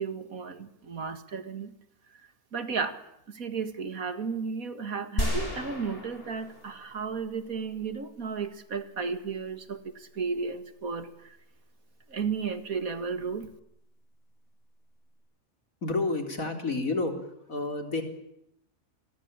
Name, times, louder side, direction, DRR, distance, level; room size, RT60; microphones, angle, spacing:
voice 1, 0.0-1.7 2.1-2.2 2.5-3.0 3.3-11.4 12.1-13.5, right 5 dB, 80° right, 11 dB, 2.4 m, -34 dB
sound 1, 5.2-7.5, left 1 dB, 40° left, 7.8 m, -33 dB
voice 2, 15.8-17.2 17.5-18.0, left 3 dB, 75° left, 6 dB, 4.2 m, -29 dB
29.0 x 21.5 x 8.8 m, 0.78 s
omnidirectional pair, 1.5 m